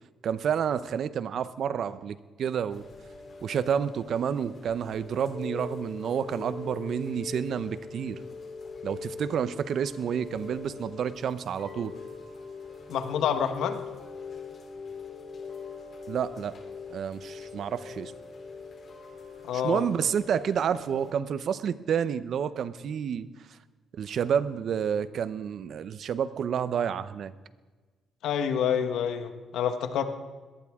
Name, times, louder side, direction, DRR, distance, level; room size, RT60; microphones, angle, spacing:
voice 1, 0.2-2.8 3.4-8.2 8.8-12.0 16.1-16.5 16.9-18.1 19.5-23.3 23.9-27.3, right 8 dB, 65° right, 15 dB, 0.7 m, -29 dB
Chime / Rain, 2.7-21.1, left 4 dB, 50° left, 3.5 m, -42 dB
voice 2, 12.9-13.8 19.4-19.8 28.2-30.0, left 8 dB, 80° left, 8 dB, 1.4 m, -28 dB
21.0 x 18.0 x 3.7 m, 1.3 s
cardioid pair, 90°, 0 cm